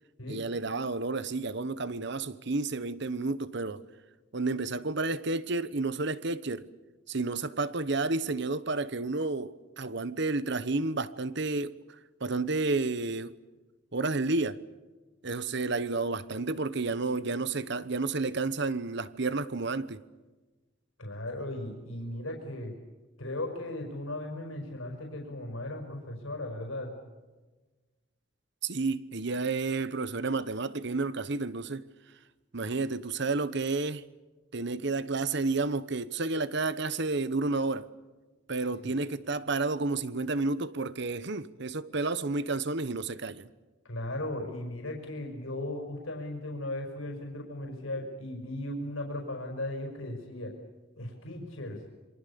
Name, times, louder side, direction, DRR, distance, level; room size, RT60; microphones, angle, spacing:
voice 1, 0.3-3.8 4.3-6.7 7.1-11.8 12.2-13.3 13.9-14.6 15.2-20.0 28.6-31.9 32.5-34.0 34.5-37.9 38.5-43.5, right 3 dB, 60° right, 1.1 m, -31 dB
voice 2, 21.0-22.7 23.2-26.9 38.8-38.9 43.8-50.5 51.0-51.8, left 1 dB, 90° left, 5.2 m, -37 dB
27.5 x 24.0 x 7.0 m
head